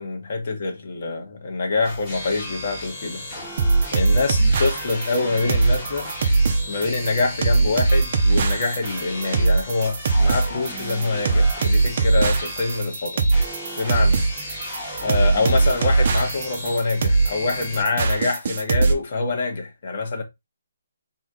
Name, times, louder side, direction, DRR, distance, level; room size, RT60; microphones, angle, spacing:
voice 1, 0.0-3.2 3.9-6.1 6.7-13.2 13.8-14.2 15.0-20.2, left 3 dB, 35° left, 1.4 m, -25 dB
sound 1, 1.8-17.8, equal, 5° left, 1.5 m, -35 dB
sound 2, 3.6-18.9, right 3 dB, 35° right, 0.8 m, -20 dB
4.1 x 3.0 x 3.9 m
hypercardioid pair, 175°, 0 cm